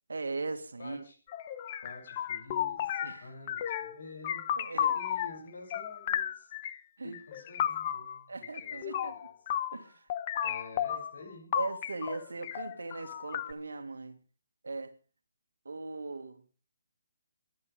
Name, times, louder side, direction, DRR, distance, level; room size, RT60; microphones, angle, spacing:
voice 1, 0.1-1.0 3.0-3.3 4.6-5.0 7.0-7.1 8.3-9.1 9.7-10.1 11.5-14.2 14.6-14.9 15.7-16.4, right 3 dB, 75° right, 1.9 m, -39 dB
voice 2, 0.8-1.2 1.8-4.6 4.9-6.5 7.0-9.4 10.4-11.6, left 3 dB, 60° left, 7.0 m, -49 dB
sound 1, 1.3-3.2 3.5-4.0 4.2-5.4 5.7-6.8 7.1-9.8 10.1-11.2 11.5-13.5, left 10 dB, 35° left, 0.9 m, -33 dB
28.5 x 11.5 x 3.5 m
figure-of-eight pair, 145°, 0 cm